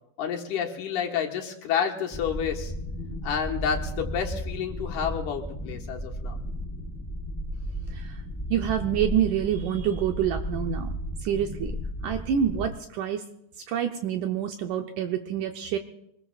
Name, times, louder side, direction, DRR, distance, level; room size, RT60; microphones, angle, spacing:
voice 1, 0.2-2.7 3.2-6.4, left 7 dB, 70° left, 1 dB, 2.8 m, -29 dB
sound 1, 2.1-12.7, equal, 5° left, 5.6 m, -34 dB
voice 2, 7.9-8.2 8.5-10.9 11.2-11.7 12.0-13.2 13.7-15.8, right 9 dB, 75° right, 5 dB, 2.1 m, -27 dB
24.5 x 21.0 x 2.4 m, 0.78 s
omnidirectional pair, 3.9 m